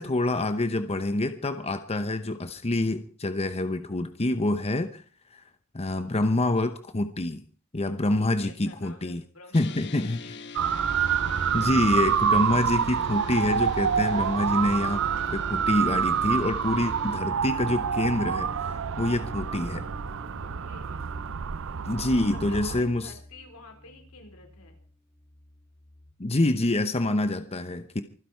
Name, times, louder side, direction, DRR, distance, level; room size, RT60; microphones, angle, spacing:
voice 1, 0.0-5.0 5.3-5.4 5.7-7.4 7.7-9.2 9.5-10.2 11.5-15.0 15.3-19.8 21.8-23.1 26.2-28.0, left 2 dB, 30° left, 10 dB, 0.9 m, -26 dB
voice 2, 7.8-9.7 10.2-10.4 18.9-19.3 20.4-21.1 22.2-24.8, left 3 dB, 80° left, 4 dB, 4.5 m, -51 dB
sound 1, 9.5-17.2, left 3 dB, 55° left, 1.1 m, -43 dB
Motor vehicle (road) / Siren, 10.6-22.8, right 7 dB, 60° right, 0.6 m, -27 dB
sound 2, 14.5-26.1, equal, 10° left, 2.1 m, -49 dB
25.5 x 10.0 x 4.6 m, 0.41 s
head